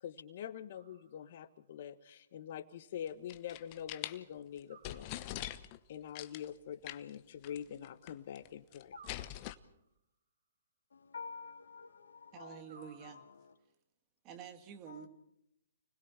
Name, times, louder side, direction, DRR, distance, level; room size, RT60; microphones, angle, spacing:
voice 1, 0.0-5.3 5.9-8.9, left 9 dB, 55° left, 12 dB, 1.4 m, -45 dB
sound 1, 0.7-1.6 4.7-5.7 8.9-10.0 12.6-13.6, right 6 dB, 65° right, 3.7 m, -62 dB
sound 2, 3.1-4.2 4.6-4.7 4.8-5.8 6.2-6.5 6.9-7.2 7.4-7.6 7.8-8.5 8.7-9.6, left 15 dB, 35° left, 1.0 m, -43 dB
voice 2, 10.9-13.5 14.9-15.1, left 5 dB, 80° left, 4 dB, 2.8 m, -50 dB
voice 3, 12.3-13.2 14.2-15.1, right 8 dB, 30° right, 7 dB, 2.4 m, -49 dB
30.0 x 20.5 x 4.4 m, 0.76 s
hypercardioid pair, 135°, 0 cm